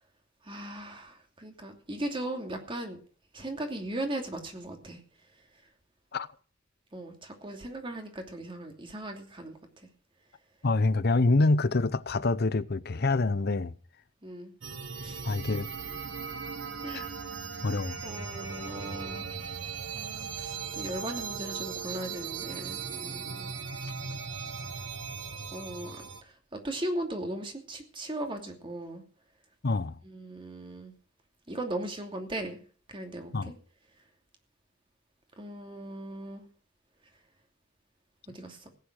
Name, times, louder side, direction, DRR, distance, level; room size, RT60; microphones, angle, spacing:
voice 1, 0.4-3.0 3.3-5.0 6.9-9.6 14.2-14.5 15.0-15.2 16.8-17.1 18.0-19.3 19.9-23.5 25.5-26.1 26.5-29.0 30.0-30.9 31.5-32.6 32.9-33.5 35.4-36.4 38.3-38.7, right 1 dB, 25° right, 2.8 m, -38 dB
voice 2, 10.6-13.7 15.2-15.7 16.9-17.1 17.6-18.0 29.6-30.0 33.3-33.5, left 3 dB, 55° left, 0.7 m, -26 dB
sound 1, 14.6-26.2, right 5 dB, 75° right, 1.7 m, -38 dB
16.5 x 9.5 x 6.4 m
head